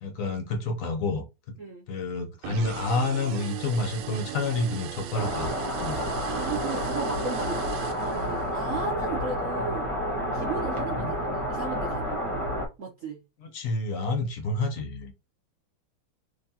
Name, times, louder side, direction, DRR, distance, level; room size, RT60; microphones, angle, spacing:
voice 1, 0.0-1.6 1.9-5.5 5.8-6.0 11.0-11.1 13.4-15.1, left 3 dB, 60° left, 0.9 m, -29 dB
sound 1, 2.4-8.6, right 9 dB, 75° right, 1.2 m, -38 dB
sound 2, 5.1-12.7, equal, 20° left, 0.9 m, -30 dB
voice 2, 5.9-7.7 8.0-9.9 10.3-12.2 12.8-13.2, right 4 dB, 60° right, 0.8 m, -35 dB
4.1 x 2.8 x 2.7 m
omnidirectional pair, 2.2 m